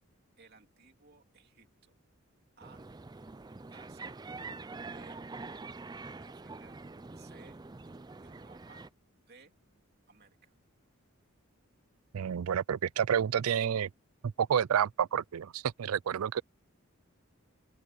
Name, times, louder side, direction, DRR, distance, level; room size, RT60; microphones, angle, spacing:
voice 1, 0.4-1.9 2.6-2.8 3.7-4.2 4.8-5.2 6.2-6.8 7.1-7.6 8.2-8.8 9.2-9.5 10.1-10.5, right 4 dB, 50° right, 3.1 m, -59 dB
sound 1, 2.6-8.9, right 3 dB, 20° right, 0.4 m, -45 dB
voice 2, 12.1-13.9 14.2-16.4, right 8 dB, 90° right, 0.4 m, -29 dB
open air
head